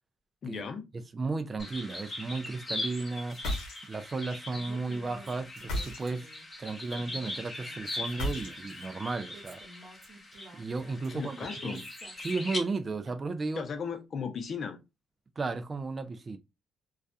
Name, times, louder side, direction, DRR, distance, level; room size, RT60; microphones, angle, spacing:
voice 1, 0.4-0.9 11.1-11.8 13.6-14.8, left 6 dB, 55° left, 0.5 m, -36 dB
voice 2, 1.1-3.4 3.9-6.3 6.6-9.6 10.5-11.4 11.6-11.8 12.2-13.7 15.4-16.4, right 3 dB, 35° right, 0.3 m, -34 dB
sound 1, 1.6-12.6, left 2 dB, 20° left, 0.8 m, -41 dB
sound 2, 3.3-4.1 5.5-6.4 8.1-8.9, left 1 dB, 85° left, 0.8 m, -35 dB
Female speech woman speaking, 4.5-6.5 6.9-8.9 9.3-13.5, right 2 dB, 60° right, 0.8 m, -52 dB
2.3 x 2.1 x 2.6 m
cardioid pair, 90°, 0 cm